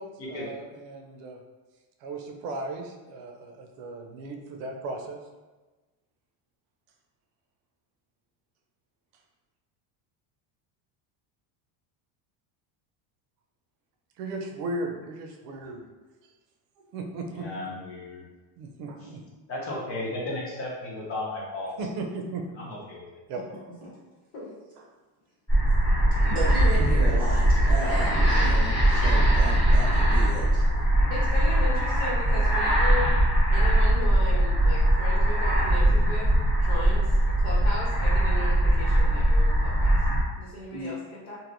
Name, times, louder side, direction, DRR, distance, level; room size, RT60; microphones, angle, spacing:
voice 1, 0.0-1.4 2.0-5.2 14.2-15.8 16.9-17.4 18.6-19.2 21.8-22.5 23.3-23.4 24.8-24.9, right 2 dB, 85° right, 3 dB, 0.7 m, -36 dB
voice 2, 17.3-18.2 19.5-21.7 22.6-23.0, left 2 dB, 30° left, -5 dB, 0.5 m, -34 dB
sound 1, 25.5-40.2, right 1 dB, 10° left, 1.2 m, -21 dB
voice 3, 26.3-30.6 40.7-40.9, right 1 dB, 20° right, -9 dB, 0.8 m, -33 dB
voice 4, 31.1-33.1 33.5-40.0 40.4-41.4, left 2 dB, 70° left, -6 dB, 1.5 m, -36 dB
3.2 x 2.6 x 2.5 m, 1.2 s
cardioid pair, 175°, 49 cm